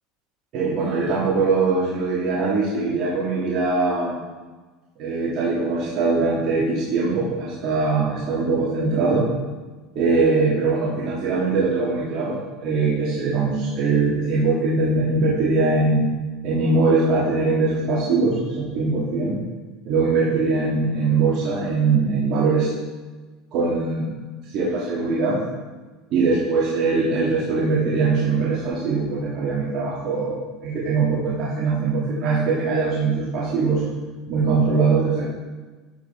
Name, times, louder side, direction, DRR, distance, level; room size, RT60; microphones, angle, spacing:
voice 1, 0.5-4.1 5.0-9.3 9.9-16.0 16.4-19.4 19.8-22.7 23.5-24.1 24.5-25.4 26.1-33.8 34.3-35.2, right 3 dB, 55° right, -7 dB, 2.9 m, -21 dB
13.0 x 6.8 x 3.8 m, 1.3 s
supercardioid pair, 105°, 0 cm